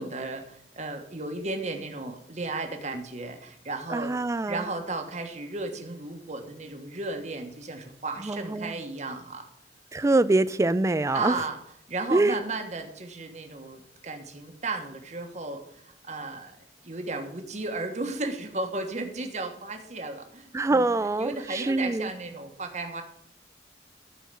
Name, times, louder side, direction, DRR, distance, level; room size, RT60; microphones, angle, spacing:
voice 1, 0.0-4.1 4.5-9.5 11.1-11.6 11.9-16.6 16.8-20.8 21.2-23.0, right 3 dB, 40° right, 1.3 m, -34 dB
voice 2, 3.9-4.7 8.2-8.8 9.9-11.4 12.1-12.4 20.5-22.1, right 2 dB, 15° right, 0.3 m, -24 dB
12.5 x 4.7 x 6.8 m
head